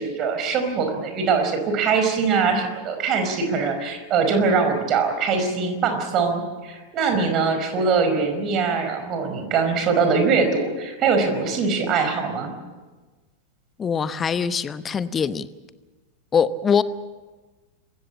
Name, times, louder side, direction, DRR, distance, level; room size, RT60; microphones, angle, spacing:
voice 1, 0.0-12.5, right 5 dB, 35° right, 6 dB, 5.0 m, -22 dB
voice 2, 13.8-15.5 16.3-16.8, left 6 dB, 20° left, 15 dB, 1.0 m, -22 dB
26.5 x 15.5 x 8.7 m, 1.3 s
figure-of-eight pair, 90°, 0 cm